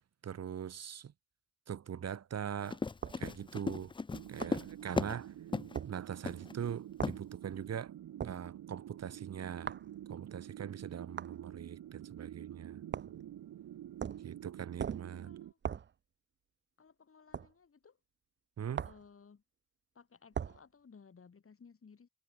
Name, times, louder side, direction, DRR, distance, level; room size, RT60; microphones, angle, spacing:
voice 1, 0.2-1.1 1.7-2.8 3.2-3.9 4.3-5.3 5.8-7.9 8.2-9.7 10.1-12.8 14.2-15.3 18.6-18.9, right 8 dB, 55° right, 0.8 m, -41 dB
Run, 2.6-5.2 5.5-5.8 6.3-6.5 7.0-7.2, left 4 dB, 15° left, 0.4 m, -36 dB
sound 1, 3.0-3.2 4.4-4.6 5.7-5.9 7.0-7.2 8.2-8.4 9.7-9.9 11.2-11.4 12.9-13.2 14.0-14.3 14.8-15.1 15.6-15.9 17.3-17.5 18.7-19.1 20.3-20.6, right 7 dB, 35° right, 0.5 m, -39 dB
sound 2, 4.1-15.5, right 11 dB, 85° right, 0.9 m, -48 dB
voice 2, 15.2-15.6 16.8-18.0 18.9-19.4 19.9-22.1, left 5 dB, 45° left, 2.0 m, -59 dB
cardioid pair, 80°, 31 cm